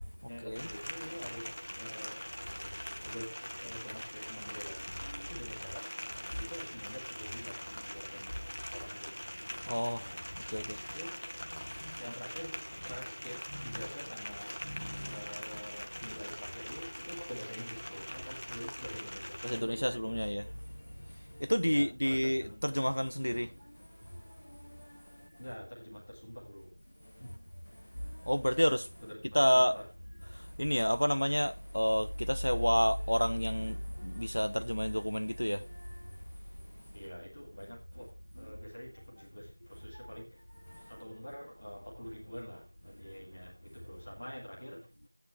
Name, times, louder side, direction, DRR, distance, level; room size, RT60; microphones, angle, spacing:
voice 1, 0.3-2.5 3.0-5.9 6.2-9.2 9.9-10.3 10.6-11.4 11.9-14.6 15.0-20.3 21.6-22.7 23.3-23.5 25.4-26.8 27.2-27.4 29.0-29.9 36.9-40.4 40.8-44.9, equal, 10° left, 1.7 m, -47 dB
sound 1, 0.5-19.6, equal, 30° left, 1.1 m, -43 dB
voice 2, 9.6-10.1 10.5-10.8 11.8-12.0 14.8-15.1 19.4-20.6 21.0-23.5 24.1-25.2 28.0-28.9 29.3-29.8 30.3-36.1 40.7-40.9, equal, 45° left, 0.5 m, -30 dB
12.5 x 9.6 x 3.4 m
figure-of-eight pair, 180°, 0 cm